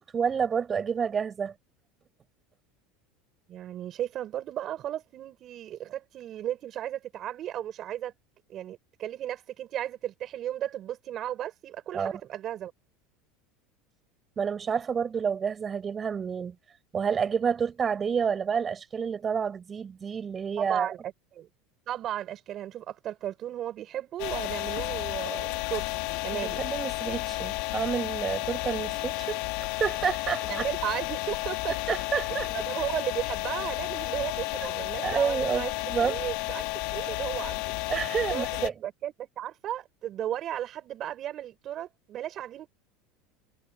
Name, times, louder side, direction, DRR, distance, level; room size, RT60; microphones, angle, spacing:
voice 1, 0.0-1.5 11.9-12.1 14.4-16.6 16.9-20.9 26.3-30.6 31.9-32.5 34.6-36.2 37.9-38.7, right 6 dB, 25° right, 7.3 m, -29 dB
voice 2, 3.5-8.1 8.5-12.7 20.6-21.5 21.9-26.6 30.5-32.0 32.5-37.7 38.3-42.7, right 11 dB, 40° right, 7.1 m, -35 dB
sound 1, 24.2-38.7, left 23 dB, 65° left, 3.3 m, -32 dB
supercardioid pair, 140°, 0 cm